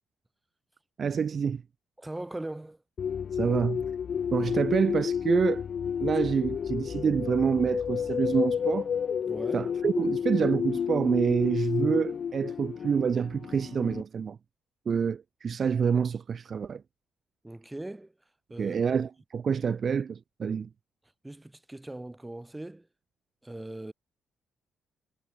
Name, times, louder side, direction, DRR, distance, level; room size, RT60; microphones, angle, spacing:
voice 1, 1.0-1.6 3.3-3.9 4.3-5.6 6.0-8.9 9.5-14.4 14.9-16.8 18.6-20.7, right 6 dB, 45° right, 0.6 m, -27 dB
voice 2, 2.0-2.8 9.3-9.7 17.4-18.1 18.5-18.8 21.2-22.9 23.4-23.9, right 1 dB, 10° right, 3.6 m, -40 dB
sound 1, 3.0-14.0, left 7 dB, 55° left, 0.8 m, -31 dB
cardioid pair, 90°, 0 cm